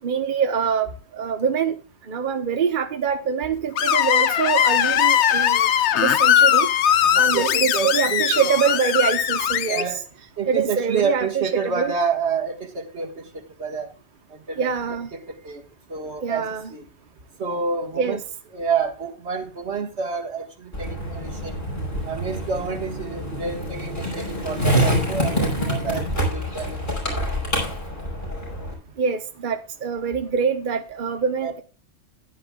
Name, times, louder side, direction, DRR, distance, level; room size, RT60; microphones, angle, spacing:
voice 1, 0.0-5.7 6.0-6.7 7.1-10.0 10.5-11.9 14.6-15.1 16.2-16.7 18.0-18.2 29.0-31.6, right 6 dB, 50° right, 1.1 m, -24 dB
Screech, 3.8-9.8, left 10 dB, 85° left, 1.0 m, -19 dB
voice 2, 7.1-8.5 9.7-10.0 10.4-13.9 14.5-15.6 15.9-16.9 17.4-18.2 18.5-21.6 22.1-27.5 31.4-31.5, right 5 dB, 75° right, 2.0 m, -29 dB
Skateboard, 20.7-28.7, equal, 50° left, 5.4 m, -26 dB
15.0 x 10.0 x 2.3 m
omnidirectional pair, 1.1 m